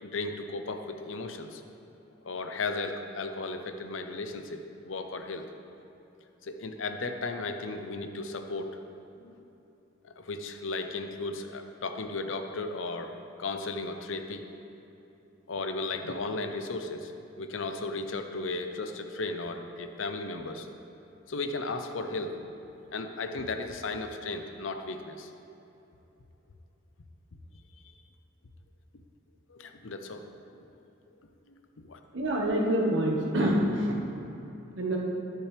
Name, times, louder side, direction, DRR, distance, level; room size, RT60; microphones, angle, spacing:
voice 1, 0.0-1.6 2.2-5.5 6.4-8.8 9.2-9.4 10.0-14.4 15.5-17.1 17.4-20.7 21.3-22.5 22.9-25.3 27.8-27.9 29.5-30.3 31.8-32.0, left 3 dB, 90° left, 6 dB, 0.7 m, -35 dB
voice 2, 32.1-34.0 34.7-35.0, right 1 dB, 70° right, -1 dB, 1.4 m, -26 dB
10.5 x 10.0 x 3.3 m, 3.0 s
head